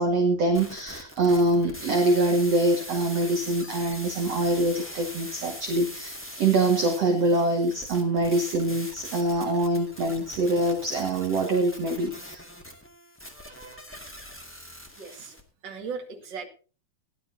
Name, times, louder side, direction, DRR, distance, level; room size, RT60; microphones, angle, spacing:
voice 1, 0.0-12.4 13.4-13.6, right 2 dB, 50° right, 3 dB, 2.4 m, -24 dB
sound 1, 0.5-15.4, equal, 5° left, 0.9 m, -42 dB
voice 2, 15.0-15.4 15.6-16.5, right 5 dB, 35° right, 1 dB, 2.5 m, -37 dB
18.5 x 11.5 x 2.8 m, 0.35 s
omnidirectional pair, 4.3 m